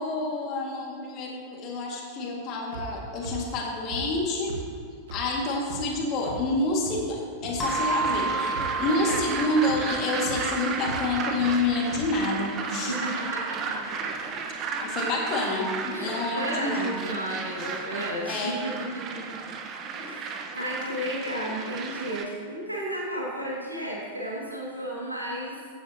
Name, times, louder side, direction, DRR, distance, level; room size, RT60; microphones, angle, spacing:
voice 1, 0.0-4.6 5.1-12.9 14.8-17.1 18.2-18.7, left 2 dB, 40° left, -1 dB, 2.1 m, -28 dB
sound 1, 2.7-2.8 3.2-3.3 3.9-4.0 4.5-4.6 5.1-5.2 5.7-5.8 6.3-6.4 6.9-7.0 7.4-7.5 8.0-8.1 8.5-8.8 9.1-9.2 9.7-9.8 10.3-10.4 10.8-11.0 11.4-11.5 11.9-12.0, right 3 dB, 60° right, 1.7 m, -38 dB
sound 2, 7.6-12.0, right 2 dB, 20° left, 1.5 m, -32 dB
sound 3, 7.6-22.3, right 5 dB, 30° right, 0.9 m, -34 dB
voice 2, 12.7-14.3 15.9-19.5 19.9-25.6, equal, 90° right, -4 dB, 2.3 m, -33 dB
15.0 x 9.0 x 2.9 m, 2.2 s
figure-of-eight pair, 90°, 0 cm